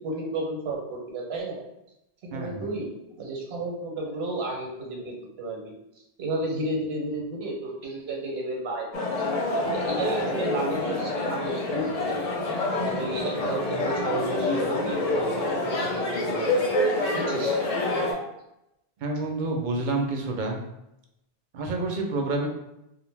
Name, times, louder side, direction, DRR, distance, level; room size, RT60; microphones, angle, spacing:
voice 1, 0.0-1.6 2.2-5.7 6.2-9.3 9.7-12.3 12.8-15.4 15.7-16.5 17.1-17.6, right 2 dB, 85° right, -1 dB, 1.0 m, -32 dB
voice 2, 2.3-2.7 19.0-20.6 21.5-22.5, right 2 dB, 60° right, 2 dB, 0.6 m, -28 dB
sound 1, 8.9-18.1, left 2 dB, 50° left, 0.5 m, -27 dB
2.5 x 2.1 x 3.2 m, 0.86 s
omnidirectional pair, 1.0 m